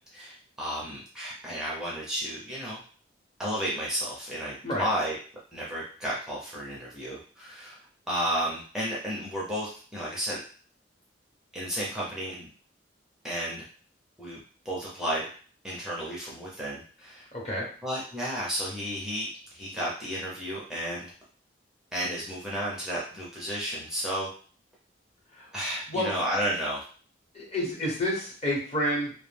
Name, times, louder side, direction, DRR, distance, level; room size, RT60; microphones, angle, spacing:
voice 1, 0.1-2.8 3.4-5.2 5.5-7.8 8.1-10.4 11.5-12.5 13.2-13.6 14.2-15.3 15.6-17.2 17.8-19.3 19.5-21.1 21.9-24.3 25.5-26.8, equal, 5° right, -6 dB, 0.5 m, -32 dB
voice 2, 17.3-17.7 25.3-25.5 25.9-26.1 27.3-29.1, left 1 dB, 35° left, -3 dB, 0.9 m, -29 dB
2.2 x 2.1 x 3.2 m, 0.42 s
head